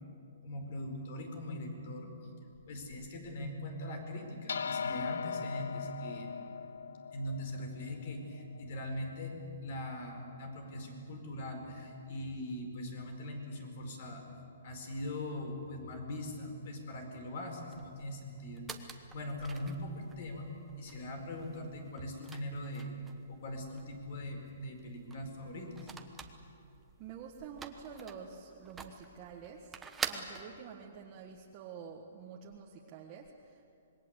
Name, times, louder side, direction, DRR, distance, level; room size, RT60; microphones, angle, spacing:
voice 1, 0.4-2.1 2.7-6.3 7.1-9.3 9.6-14.2 14.6-20.5 20.8-22.9 23.3-25.9, left 1 dB, 50° left, 4 dB, 4.9 m, -41 dB
sound 1, 4.5-9.1, left 6 dB, 80° left, 0.6 m, -39 dB
sound 2, 17.7-30.4, right 5 dB, 10° right, 1.1 m, -47 dB
voice 2, 27.0-29.7 30.0-33.7, right 6 dB, 25° right, -1 dB, 1.6 m, -48 dB
26.5 x 21.5 x 8.2 m, 2.6 s
hypercardioid pair, 160°, 0 cm